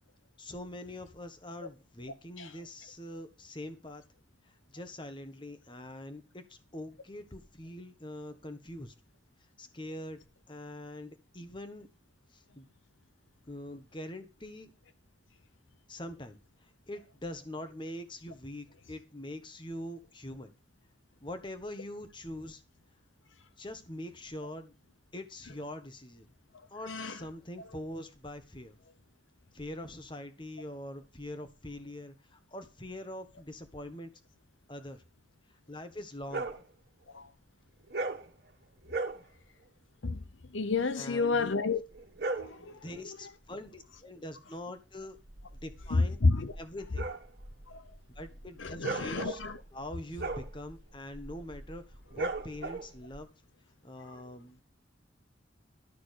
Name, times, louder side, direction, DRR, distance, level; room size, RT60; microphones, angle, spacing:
voice 1, 0.4-4.0 4.4-8.9 9.6-10.2 10.5-11.9 12.3-12.7 13.5-14.7 15.9-20.5 21.2-22.6 23.6-24.7 25.1-26.3 26.7-28.8 29.5-34.1 34.7-35.0 35.5-36.5 40.9-41.6 42.7-45.2 45.6-46.2 46.6-47.1 48.1-49.4 49.7-53.3 53.8-54.6, left 1 dB, 25° left, 1.4 m, -43 dB
sound 1, 36.3-36.6 37.9-38.3 38.8-39.2 41.9-42.6 45.2-53.2, right 3 dB, 55° right, 1.7 m, -38 dB
voice 2, 40.5-41.8 42.4-42.7 45.9-46.5 48.6-49.6, left 3 dB, 85° left, 0.9 m, -29 dB
12.5 x 6.2 x 6.5 m
head